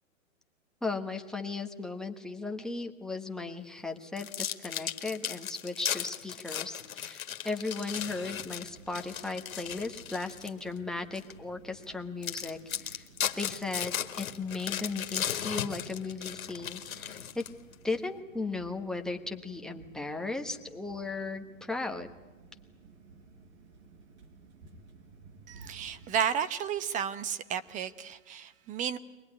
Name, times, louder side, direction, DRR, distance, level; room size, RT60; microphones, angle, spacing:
voice 1, 0.8-13.0 13.4-17.4 17.8-22.1, left 3 dB, ahead, 3 dB, 1.2 m, -36 dB
sound 1, 4.2-10.6 11.1-11.3 11.8-11.9 12.2-17.7, left 9 dB, 85° left, 1.8 m, -36 dB
sound 2, 8.4-26.1, right 4 dB, 60° right, 4.8 m, -55 dB
voice 2, 25.5-29.0, right 8 dB, 20° right, 14 dB, 0.8 m, -32 dB
23.0 x 19.5 x 9.8 m, 1.2 s
hypercardioid pair, 135°, 41 cm